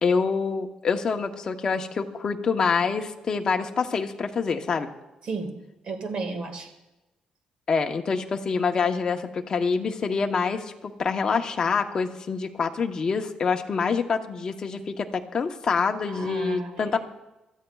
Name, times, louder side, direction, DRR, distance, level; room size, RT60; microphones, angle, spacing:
voice 1, 0.0-4.9 7.7-17.1, left 5 dB, 35° left, 4 dB, 0.9 m, -26 dB
voice 2, 5.2-5.6 5.8-6.7 16.1-16.9, right 3 dB, 50° right, 5 dB, 1.7 m, -33 dB
23.0 x 13.5 x 2.3 m, 1.0 s
cardioid pair, 165°, 2 cm